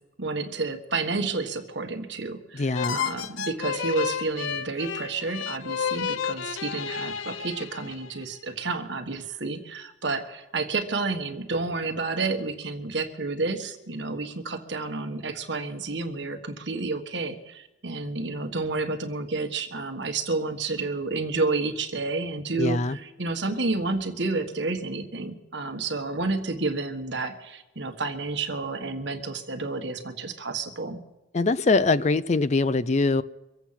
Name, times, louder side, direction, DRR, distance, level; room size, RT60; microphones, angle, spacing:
voice 1, 0.2-31.0, right 3 dB, 65° right, 1.6 m, -30 dB
voice 2, 2.5-3.0 22.6-23.0 31.3-33.2, left 3 dB, 35° left, 0.4 m, -23 dB
sound 1, 2.7-8.2, left 7 dB, 80° left, 0.6 m, -31 dB
24.5 x 8.2 x 5.8 m
head